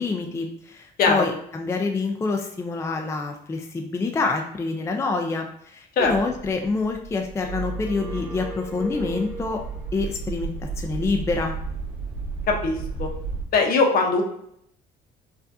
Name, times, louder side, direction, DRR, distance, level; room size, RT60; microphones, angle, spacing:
voice 1, 0.0-9.6 9.9-11.6, left 3 dB, 15° left, 3 dB, 0.4 m, -27 dB
sound 1, 6.0-13.4, right 4 dB, 35° right, 1.4 m, -34 dB
sound 2, 7.4-9.8, right 2 dB, 10° right, 1.0 m, -34 dB
voice 2, 12.5-13.1 13.5-14.2, left 4 dB, 60° left, 2 dB, 0.8 m, -20 dB
4.7 x 2.4 x 2.6 m, 0.72 s
cardioid pair, 110°, 17 cm